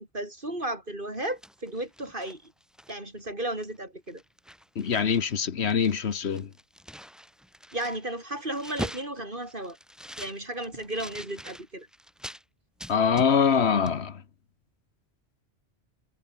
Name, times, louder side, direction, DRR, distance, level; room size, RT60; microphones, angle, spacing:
voice 1, 0.0-2.5 2.9-4.2 7.7-9.8 10.2-11.9, right 1 dB, 50° right, 6.1 m, -34 dB
sound 1, 1.1-3.2 3.6-3.8 4.1-5.3 5.6-12.4 12.8-13.6 13.9-14.0, equal, ahead, 4.4 m, -43 dB
voice 2, 4.7-6.5 12.9-14.2, left 6 dB, 80° left, 1.5 m, -24 dB
omnidirectional pair, 1.1 m